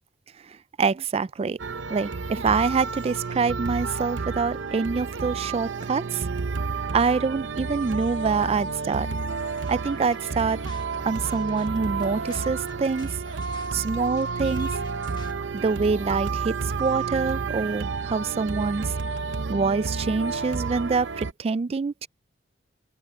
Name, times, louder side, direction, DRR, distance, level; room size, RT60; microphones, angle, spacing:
voice 1, 0.5-1.6 1.9-6.2 6.9-9.1 9.7-10.6 11.0-13.1 13.7-14.8 15.6-18.9 19.5-22.1, right 4 dB, 35° right, 0.3 m, -25 dB
sound 1, 1.6-21.3, right 4 dB, 80° right, 0.7 m, -31 dB
sound 2, 9.6-16.1, left 3 dB, 25° left, 1.2 m, -48 dB
open air
head